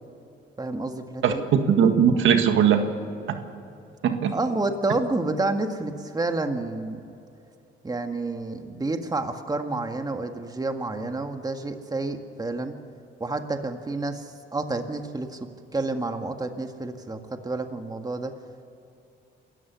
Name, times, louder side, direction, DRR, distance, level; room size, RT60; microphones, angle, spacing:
voice 1, 0.6-1.4 4.3-7.0 7.8-12.8 13.2-15.4 15.7-18.3, right 2 dB, 20° right, 6 dB, 1.8 m, -29 dB
voice 2, 1.2-2.8 3.3-3.4 4.0-4.3, right 8 dB, 80° right, 6 dB, 1.8 m, -20 dB
27.5 x 14.5 x 7.0 m, 2.7 s
cardioid pair, 90°, 20 cm